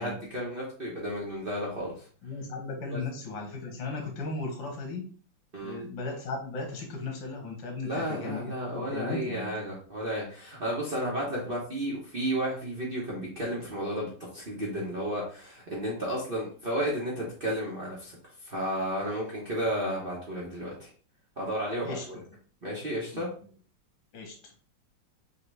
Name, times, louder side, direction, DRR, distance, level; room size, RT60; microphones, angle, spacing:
voice 1, 0.0-1.9 2.9-3.0 5.5-5.8 7.8-18.2 18.4-20.9 21.4-22.2 22.6-23.3, equal, 35° right, -5 dB, 1.0 m, -32 dB
voice 2, 2.2-5.0 5.6-9.6 21.8-22.1 23.1-23.2 24.1-24.3, left 3 dB, 80° left, 2 dB, 1.8 m, -36 dB
5.6 x 2.6 x 3.2 m, 0.42 s
omnidirectional pair, 2.1 m